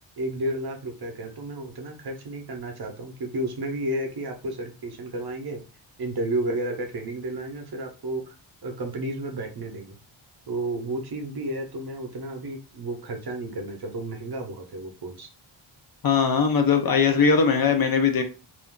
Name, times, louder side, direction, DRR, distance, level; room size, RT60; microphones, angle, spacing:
voice 1, 0.2-5.6 6.0-8.3 8.6-10.0 10.5-15.3, right 1 dB, 50° right, 4 dB, 0.7 m, -32 dB
voice 2, 16.0-18.2, left 5 dB, 45° left, 5 dB, 0.5 m, -20 dB
2.5 x 2.3 x 3.6 m, 0.34 s
wide cardioid pair, 130°, 50 cm